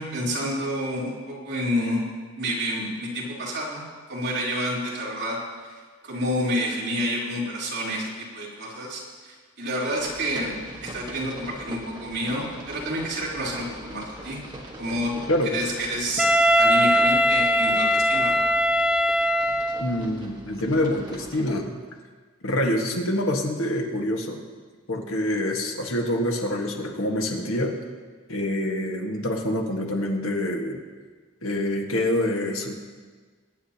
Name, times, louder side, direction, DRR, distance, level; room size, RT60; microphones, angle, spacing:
voice 1, 0.0-2.0 2.4-3.8 4.1-5.7 6.0-14.4 14.8-15.1 15.4-16.3 16.6-18.4, equal, 55° right, -6 dB, 3.6 m, -29 dB
sound 1, 10.0-21.5, right 1 dB, 20° right, 1.5 m, -42 dB
Wind instrument woodwind instrument, 16.2-20.0, equal, 5° right, 0.3 m, -20 dB
voice 2, 19.8-21.7 22.4-24.4 24.9-27.8 28.3-30.8 31.4-32.7, left 1 dB, 80° left, 1 dB, 1.6 m, -26 dB
23.0 x 9.9 x 2.9 m, 1.4 s
head